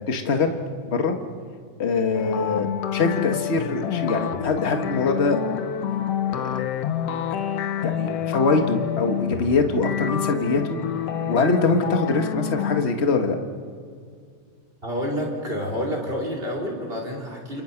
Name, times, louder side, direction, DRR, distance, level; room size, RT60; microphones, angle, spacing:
voice 1, 0.1-0.5 0.9-1.2 1.8-2.7 2.9-5.4 6.3-6.5 7.8-10.8 11.3-13.4, left 3 dB, 30° left, 5 dB, 1.4 m, -23 dB
sound 1, 2.1-12.8, left 9 dB, 65° left, 1.8 m, -28 dB
voice 2, 14.8-17.6, equal, 20° right, -1 dB, 4.8 m, -28 dB
29.0 x 29.0 x 6.0 m, 2.1 s
omnidirectional pair, 3.4 m